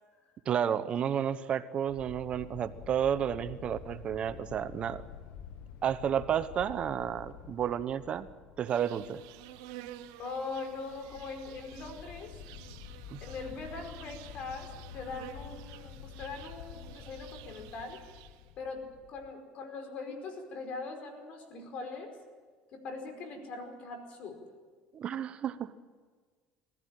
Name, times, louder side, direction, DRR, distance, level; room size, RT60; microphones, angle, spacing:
voice 1, 0.5-5.0 5.8-8.3 8.6-9.2 13.1-13.2 24.9-25.7, right 9 dB, 45° right, 13 dB, 0.9 m, -31 dB
sound 1, 1.9-19.3, left 8 dB, 75° left, 0.9 m, -49 dB
Insect, 8.7-18.5, right 13 dB, 85° right, 1.0 m, -51 dB
voice 2, 10.2-12.3 13.2-18.0 18.6-22.1 22.7-24.4, left 3 dB, 55° left, 5 dB, 5.0 m, -41 dB
20.5 x 15.0 x 9.1 m, 1.5 s
supercardioid pair, 95°, 3 cm